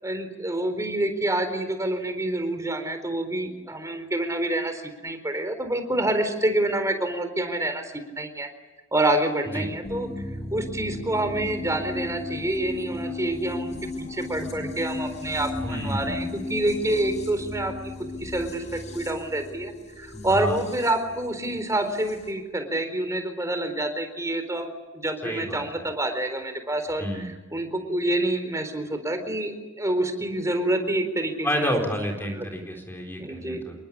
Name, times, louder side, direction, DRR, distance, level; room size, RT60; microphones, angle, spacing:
voice 1, 0.0-8.5 8.9-10.1 10.5-17.7 18.2-24.7 25.0-31.9 32.2-32.5 33.2-33.7, right 1 dB, 15° right, 8 dB, 4.1 m, -27 dB
sound 1, 9.8-22.3, left 2 dB, 35° left, 6.0 m, -36 dB
voice 2, 15.6-16.3 20.1-20.6 25.2-25.9 27.0-27.3 31.4-33.7, equal, 10° left, 2 dB, 4.2 m, -30 dB
28.0 x 22.5 x 8.6 m, 1.2 s
head